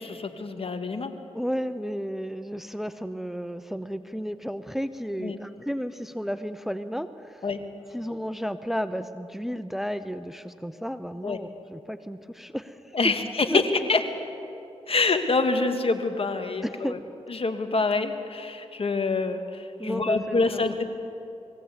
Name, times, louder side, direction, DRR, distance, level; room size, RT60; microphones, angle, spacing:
voice 1, 0.1-1.1 5.2-5.4 7.4-7.6 11.2-11.4 12.9-13.5 13.9-14.0 14.9-17.0 17.3-20.8, left 3 dB, 50° left, 7 dB, 1.9 m, -26 dB
voice 2, 1.3-7.5 7.9-13.1 13.5-13.9 16.6-17.0 19.8-20.8, equal, ahead, 12 dB, 0.8 m, -33 dB
21.5 x 16.0 x 8.4 m, 2.9 s
cardioid pair, 45°, 12 cm